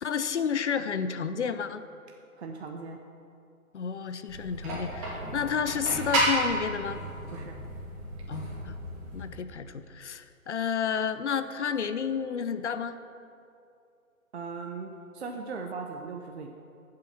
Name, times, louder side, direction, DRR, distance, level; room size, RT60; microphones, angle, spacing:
voice 1, 0.0-1.8 3.7-7.0 8.3-8.8 9.1-13.0, left 7 dB, 50° left, 11 dB, 0.7 m, -31 dB
voice 2, 2.4-3.0 7.3-7.6 14.3-16.5, right 4 dB, 50° right, 3 dB, 0.8 m, -38 dB
sound 1, 4.3-9.3, right 1 dB, 25° right, 2.8 m, -32 dB
12.0 x 7.6 x 5.9 m, 2.5 s
hypercardioid pair, 155°, 43 cm